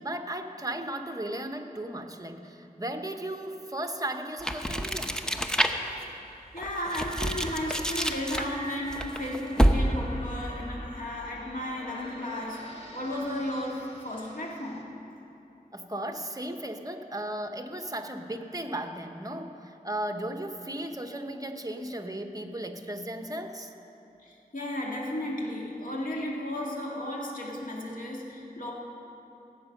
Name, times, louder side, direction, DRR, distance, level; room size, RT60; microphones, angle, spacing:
voice 1, 0.0-5.2 15.7-23.7, right 1 dB, 25° right, 6 dB, 1.0 m, -36 dB
sound 1, 4.4-6.0 6.5-10.1, equal, 5° left, 0.8 m, -27 dB
voice 2, 6.5-14.9 15.2-15.3 24.2-28.7, left 1 dB, 60° left, -2 dB, 2.1 m, -34 dB
Space Predator, 6.7-14.8, right 1 dB, 40° left, 1.6 m, -45 dB
16.5 x 8.4 x 6.5 m, 2.8 s
wide cardioid pair, 60°, 16 cm